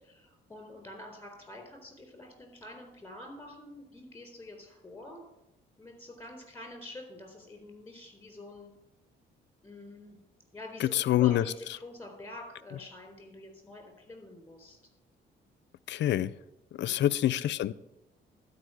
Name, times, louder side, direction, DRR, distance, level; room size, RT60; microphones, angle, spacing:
voice 1, 0.0-5.2 5.8-8.7 9.6-10.2 10.5-14.8 16.8-17.2, left 1 dB, 10° left, 4.1 m, -47 dB
voice 2, 10.8-11.4 15.9-16.3 16.8-17.7, left 13 dB, 65° left, 0.5 m, -26 dB
12.0 x 5.3 x 7.9 m
cardioid pair, 90°, 20 cm